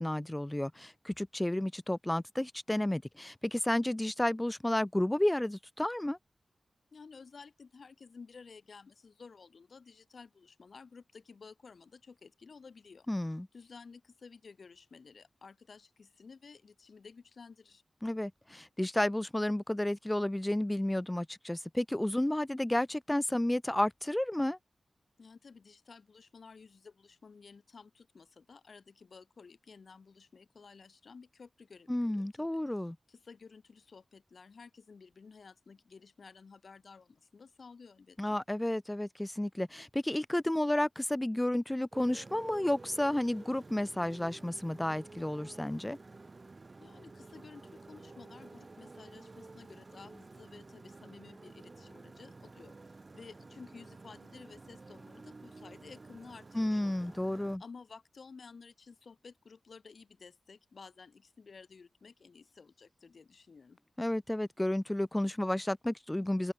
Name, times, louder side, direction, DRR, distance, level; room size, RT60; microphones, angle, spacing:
voice 1, 0.0-6.2 13.1-13.5 18.0-24.6 31.9-33.0 38.2-46.0 56.5-57.6 64.0-66.5, left 1 dB, 15° left, 0.3 m, -32 dB
voice 2, 6.9-13.1 13.5-17.8 25.2-38.4 46.8-57.2 57.6-63.8, left 5 dB, 70° left, 5.2 m, -54 dB
Motorcycle, 41.9-57.6, right 3 dB, 45° right, 2.9 m, -51 dB
open air
cardioid pair, 55°, 0 cm